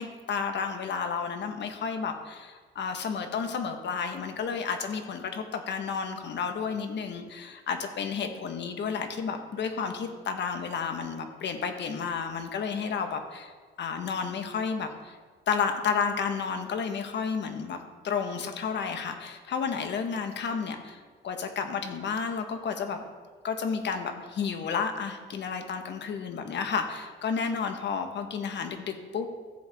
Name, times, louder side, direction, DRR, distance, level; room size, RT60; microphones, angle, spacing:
voice 1, 0.0-13.5 13.8-15.2 15.5-17.8 18.0-21.0 21.2-23.1 23.4-29.3, left 6 dB, 60° left, 6 dB, 1.3 m, -31 dB
14.5 x 7.9 x 3.5 m, 1.5 s
cardioid pair, 90°, 20 cm